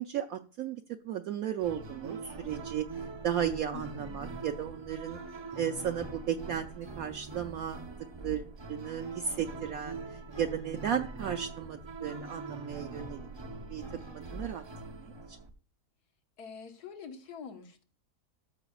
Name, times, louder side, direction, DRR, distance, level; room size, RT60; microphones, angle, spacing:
voice 1, 0.0-2.8 3.2-5.2 5.6-7.8 8.2-13.2 13.7-13.8 14.1-14.6 14.9-15.4, right 9 dB, 65° right, 5 dB, 1.0 m, -35 dB
sound 1, 1.6-15.5, right 3 dB, 45° right, 0.3 m, -43 dB
voice 2, 3.7-4.3 16.4-17.8, left 6 dB, 70° left, 5 dB, 1.8 m, -46 dB
13.0 x 6.5 x 2.4 m, 0.41 s
omnidirectional pair, 1.7 m